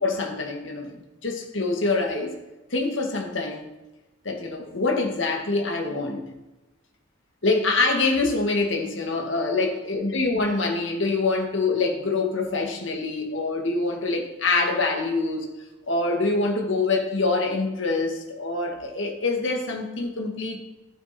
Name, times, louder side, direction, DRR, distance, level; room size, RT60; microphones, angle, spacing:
voice 1, 0.0-2.4 2.7-3.7 4.3-6.2 7.4-15.5 15.9-20.6, left 3 dB, 65° left, 2 dB, 1.9 m, -25 dB
12.0 x 8.4 x 4.4 m, 1.1 s
head